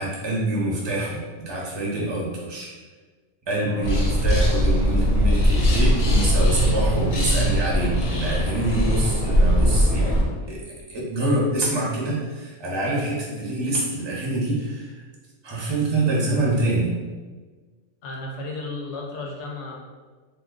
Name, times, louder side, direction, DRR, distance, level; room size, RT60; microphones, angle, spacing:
voice 1, 0.0-2.7 3.5-10.6 10.9-15.0 15.4-16.9, right 1 dB, 30° right, -4 dB, 0.5 m, -26 dB
voice 2, 3.6-4.0 8.9-9.2 18.0-19.8, left 2 dB, 65° left, -1 dB, 0.8 m, -34 dB
sound 1, 3.8-10.2, equal, 85° left, 1.1 m, -20 dB
2.9 x 2.2 x 3.6 m, 1.4 s
omnidirectional pair, 1.5 m